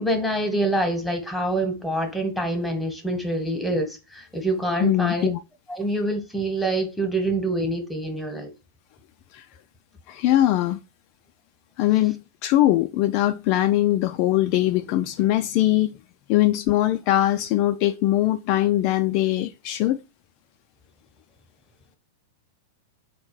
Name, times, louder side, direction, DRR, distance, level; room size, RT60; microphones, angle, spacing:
voice 1, 0.0-5.3 5.7-8.5, right 1 dB, ahead, 1.2 m, -26 dB
voice 2, 4.8-5.4 9.3-9.4 10.1-10.8 11.8-15.9 16.3-20.0, left 14 dB, 45° left, 0.3 m, -21 dB
4.3 x 2.4 x 4.6 m
figure-of-eight pair, 95°, 0 cm